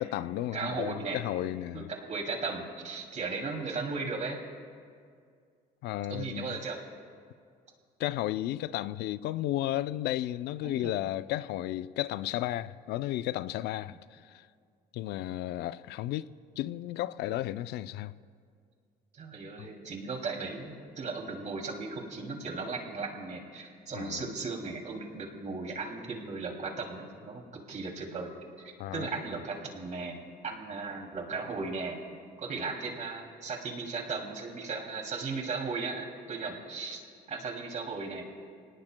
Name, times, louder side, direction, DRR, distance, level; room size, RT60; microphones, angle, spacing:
voice 1, 0.0-1.9 5.8-6.6 8.0-14.5 14.9-16.3 16.6-18.1 19.6-19.7 23.9-24.3 28.8-29.1, left 14 dB, 75° left, 0.4 m, -33 dB
voice 2, 0.5-1.2 1.7-4.4 6.1-6.8 10.6-10.9 19.1-28.3 28.6-30.2 30.4-32.0 32.4-37.0 37.3-38.2, right 4 dB, 45° right, 2.7 m, -36 dB
25.5 x 18.5 x 2.2 m
cardioid pair, 110°, 17 cm